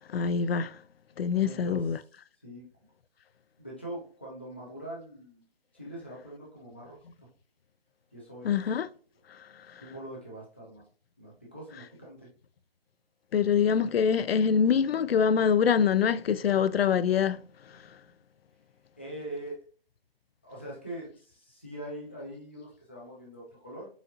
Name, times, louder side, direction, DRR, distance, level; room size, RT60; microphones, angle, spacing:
voice 1, 0.1-0.8 1.2-2.0 8.4-8.9 9.3-9.8 13.3-18.0, left 7 dB, 80° left, 0.4 m, -25 dB
voice 2, 1.4-1.9 2.4-2.7 3.6-5.4 5.7-7.3 8.1-8.5 9.8-10.8 11.2-12.3 13.4-13.9 19.0-19.6 20.4-23.9, right 1 dB, 10° left, 0.5 m, -43 dB
7.0 x 2.6 x 2.7 m
hypercardioid pair, 170°, 30 cm